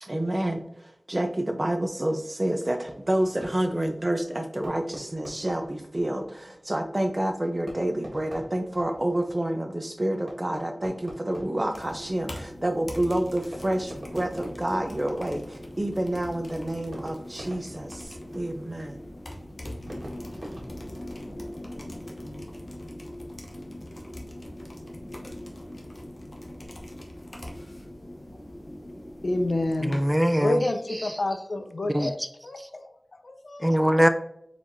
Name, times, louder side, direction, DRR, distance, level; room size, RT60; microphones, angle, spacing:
voice 1, 0.0-19.0, right 1 dB, 35° right, 0.7 m, -28 dB
Fireworks, 2.8-21.6, right 1 dB, 70° right, 1.6 m, -47 dB
sound 1, 11.7-30.1, left 1 dB, 50° left, 1.0 m, -41 dB
voice 2, 29.2-30.0 30.4-33.8, left 2 dB, 75° left, 0.6 m, -29 dB
voice 3, 29.8-31.4 31.9-32.3 33.6-34.1, equal, 5° right, 0.4 m, -23 dB
4.5 x 4.2 x 2.7 m
wide cardioid pair, 65°, 0 cm